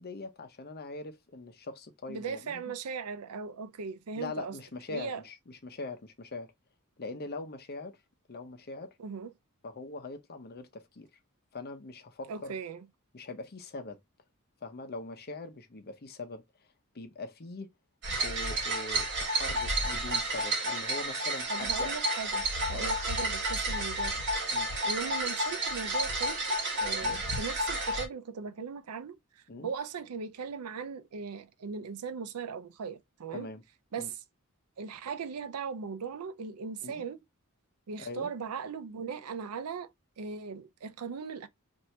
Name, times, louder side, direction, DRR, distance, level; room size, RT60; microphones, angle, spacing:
voice 1, 0.0-2.7 4.2-6.5 7.0-8.0 8.3-8.9 9.6-11.1 11.5-12.6 13.1-14.0 14.6-16.4 16.9-17.7 18.2-21.9 22.7-22.9 24.5-24.7 27.0-27.2 29.5-29.7 33.3-33.6 34.0-34.1 36.8-37.0 38.0-38.3, left 3 dB, 45° left, 0.7 m, -42 dB
voice 2, 2.1-4.6 4.9-5.2 9.0-9.3 12.3-12.9 21.5-24.6 24.8-26.4 26.8-29.2 29.6-33.5 33.9-34.1 34.8-37.2 37.9-41.5, right 5 dB, 85° right, 0.5 m, -38 dB
sound 1, 18.0-28.1, right 1 dB, 55° right, 1.2 m, -31 dB
2.9 x 2.6 x 3.2 m
head